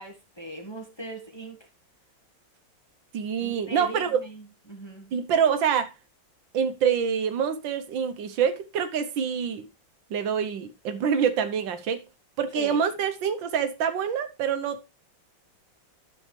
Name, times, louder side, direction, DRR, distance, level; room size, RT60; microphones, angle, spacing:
voice 1, 0.0-1.7 3.4-5.1 12.5-12.9, right 1 dB, 15° left, 1.3 m, -39 dB
voice 2, 3.1-4.2 5.1-5.9 6.5-9.7 10.1-12.0 12.4-14.9, right 7 dB, 75° right, 1.6 m, -26 dB
12.0 x 6.3 x 3.2 m
omnidirectional pair, 2.1 m